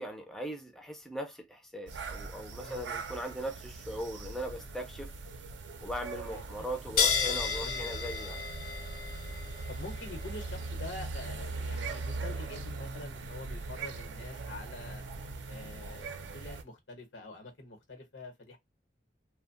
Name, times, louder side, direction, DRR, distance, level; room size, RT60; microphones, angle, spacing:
voice 1, 0.0-5.1 5.8-8.4, equal, ahead, 0.4 m, -39 dB
sound 1, 1.9-16.6, right 3 dB, 85° right, 0.5 m, -41 dB
voice 2, 2.6-3.0 6.2-6.7 7.6-7.9 9.7-15.0 15.5-18.6, left 2 dB, 85° left, 0.9 m, -46 dB
sound 2, 7.0-13.9, left 6 dB, 50° left, 0.6 m, -35 dB
2.7 x 2.1 x 2.5 m
head